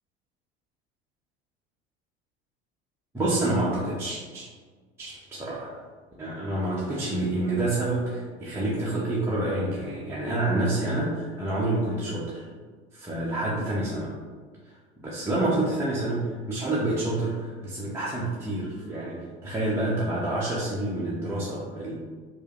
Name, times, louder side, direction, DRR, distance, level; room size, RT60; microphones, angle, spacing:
voice 1, 3.1-4.5 5.0-5.7 6.2-12.5 12.9-14.2 15.0-21.9, right 2 dB, 5° right, -8 dB, 0.7 m, -28 dB
4.8 x 2.1 x 2.9 m, 1.5 s
figure-of-eight pair, 70°, 34 cm